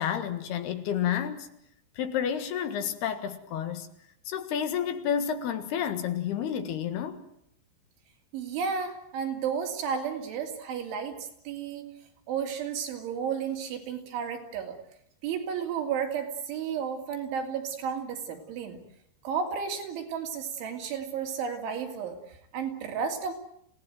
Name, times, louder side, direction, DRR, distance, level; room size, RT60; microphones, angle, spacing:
voice 1, 0.0-1.5 2.0-3.9 4.3-7.2, left 8 dB, 65° left, 10 dB, 3.4 m, -30 dB
voice 2, 8.3-11.9 12.3-14.8 15.2-18.8 19.2-23.3, right 7 dB, 90° right, 4 dB, 5.3 m, -33 dB
28.0 x 17.5 x 9.3 m, 0.74 s
omnidirectional pair, 5.2 m